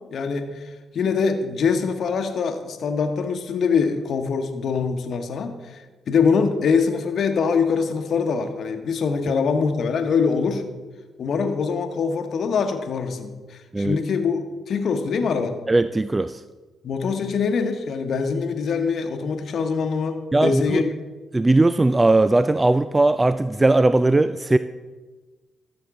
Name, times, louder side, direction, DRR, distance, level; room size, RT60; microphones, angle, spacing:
voice 1, 0.1-5.8 6.1-10.6 11.2-15.6 16.8-20.9, left 5 dB, 60° left, 7 dB, 1.0 m, -23 dB
voice 2, 15.7-16.4 20.3-20.8 21.3-24.6, right 2 dB, 20° right, 13 dB, 0.3 m, -18 dB
14.0 x 7.0 x 3.6 m, 1.3 s
hypercardioid pair, 40°, 0 cm